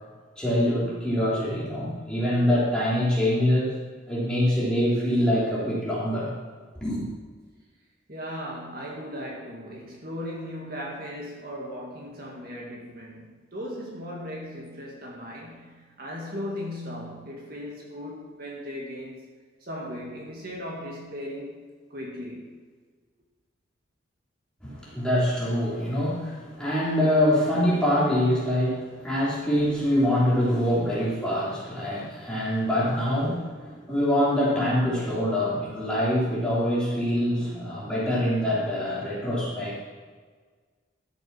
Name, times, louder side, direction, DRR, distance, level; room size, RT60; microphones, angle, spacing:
voice 1, 0.4-3.7 4.1-6.3 6.7-7.0 24.6-39.8, left 1 dB, 5° left, -8 dB, 3.3 m, -24 dB
voice 2, 8.1-19.2 19.6-21.6 21.9-22.5, equal, 50° right, -2 dB, 1.9 m, -37 dB
12.0 x 6.9 x 6.0 m, 1.5 s
head